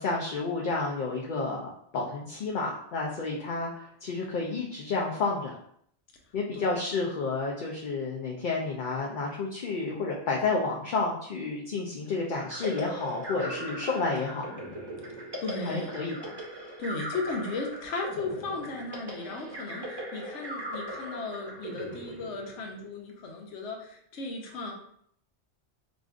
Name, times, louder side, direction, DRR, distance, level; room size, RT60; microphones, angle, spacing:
voice 1, 0.0-5.6 6.3-14.5 15.7-16.3, left 3 dB, 55° left, -2 dB, 0.6 m, -30 dB
sound 1, 12.3-22.9, equal, 25° right, 0.8 m, -39 dB
voice 2, 15.4-15.9 16.8-24.7, left 3 dB, 80° left, 2 dB, 1.1 m, -36 dB
4.9 x 2.5 x 2.4 m, 0.67 s
omnidirectional pair, 1.2 m